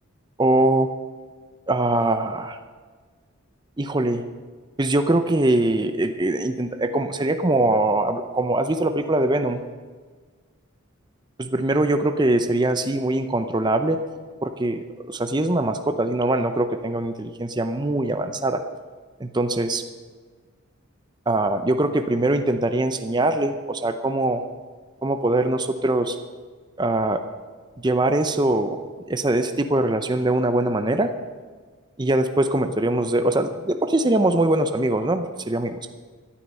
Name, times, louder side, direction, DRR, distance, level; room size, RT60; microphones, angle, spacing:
voice 1, 0.4-0.9 1.7-2.6 3.8-4.2 4.8-9.6 11.4-14.0 14.4-18.6 19.2-19.8 21.3-24.4 25.0-26.2 26.8-27.2 27.8-31.1 32.0-35.8, right 2 dB, 20° right, 8 dB, 0.6 m, -22 dB
16.5 x 11.5 x 5.5 m, 1.5 s
head